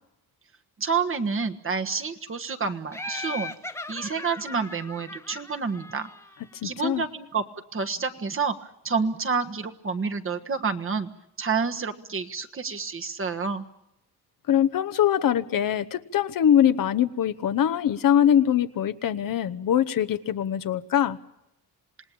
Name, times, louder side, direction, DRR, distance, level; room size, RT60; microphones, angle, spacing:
voice 1, 0.8-3.5 3.9-6.1 6.6-7.4 7.7-11.1 11.4-13.6, right 5 dB, 30° right, 6 dB, 1.5 m, -29 dB
Laughter, 2.9-6.6, left 2 dB, 5° left, 1.1 m, -38 dB
voice 2, 6.5-7.1 14.5-21.2, left 10 dB, 55° left, 12 dB, 1.1 m, -23 dB
27.0 x 19.0 x 8.7 m, 0.84 s
cardioid pair, 115°, 40 cm